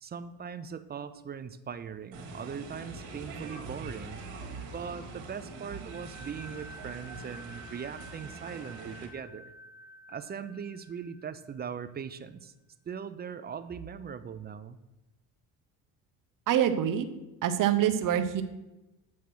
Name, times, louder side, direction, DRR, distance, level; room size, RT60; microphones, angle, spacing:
voice 1, 0.0-4.2 4.6-9.5 10.1-12.5 12.9-14.8, right 7 dB, 25° right, 12 dB, 0.4 m, -40 dB
sound 1, 2.1-9.1, right 4 dB, 80° right, 1.5 m, -43 dB
sound 2, 5.4-11.9, equal, ahead, 2.2 m, -51 dB
voice 2, 16.5-17.1 17.4-18.4, right 10 dB, 55° right, 9 dB, 0.8 m, -25 dB
8.3 x 3.1 x 5.9 m, 1.0 s
supercardioid pair, 80°, 39 cm